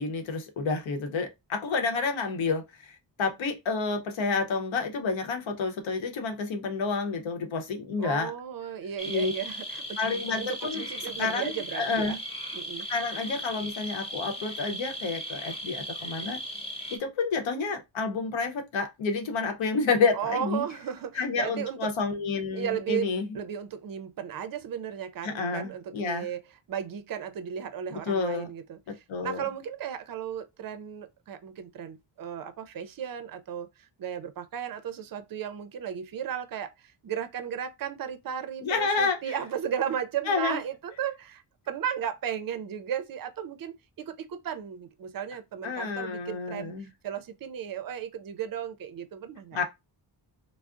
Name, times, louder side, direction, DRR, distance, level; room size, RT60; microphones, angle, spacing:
voice 1, 0.0-8.3 9.0-9.3 10.0-10.8 11.2-12.2 12.9-16.4 16.9-20.6 21.1-23.4 25.2-26.3 27.9-28.5 28.9-29.4 38.6-39.4 40.3-40.6 45.6-46.9 49.5-49.6, left 4 dB, 90° left, 0.8 m, -29 dB
voice 2, 8.0-9.8 10.4-12.2 12.5-12.9 20.1-21.9 22.5-26.4 26.7-28.8 29.2-46.7 47.0-49.6, right 9 dB, 50° right, 0.5 m, -35 dB
sound 1, 9.0-17.0, equal, 15° left, 0.4 m, -37 dB
3.5 x 2.0 x 2.4 m
wide cardioid pair, 135°, 45 cm